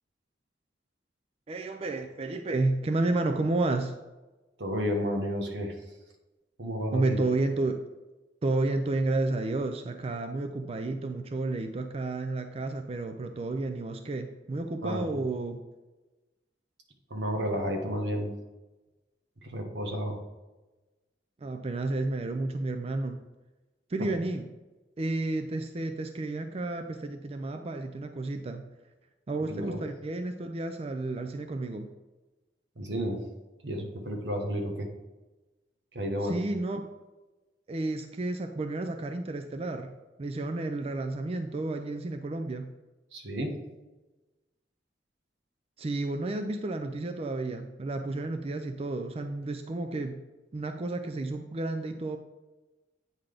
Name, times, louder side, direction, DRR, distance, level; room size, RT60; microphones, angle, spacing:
voice 1, 1.5-3.9 6.9-7.8 8.4-15.6 21.4-23.2 23.9-24.5 25.0-28.7 29.3-31.9 36.2-36.8 37.7-39.9 40.2-42.7 45.8-50.2 50.5-52.2, right 2 dB, 35° right, 6 dB, 0.4 m, -31 dB
voice 2, 4.6-5.8 6.6-7.2 14.8-15.2 17.1-18.3 19.4-20.2 29.5-29.8 32.8-33.2 33.6-34.9 35.9-36.4 43.1-43.5, equal, 80° right, 2 dB, 1.3 m, -31 dB
8.8 x 4.0 x 5.0 m, 1.1 s
head